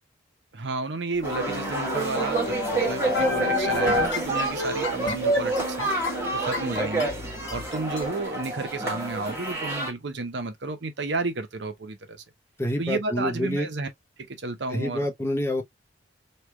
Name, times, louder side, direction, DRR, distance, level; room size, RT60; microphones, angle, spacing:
voice 1, 0.5-5.9 6.3-7.1 7.5-12.2 12.8-13.9 14.3-15.1, right 3 dB, 60° right, 0.8 m, -32 dB
sound 1, 1.2-8.1, left 3 dB, 75° left, 1.2 m, -31 dB
sound 2, 1.2-9.9, right 2 dB, 15° right, 1.3 m, -28 dB
voice 2, 12.6-13.7 14.7-15.6, left 1 dB, 15° left, 0.7 m, -27 dB
3.2 x 2.3 x 3.1 m
head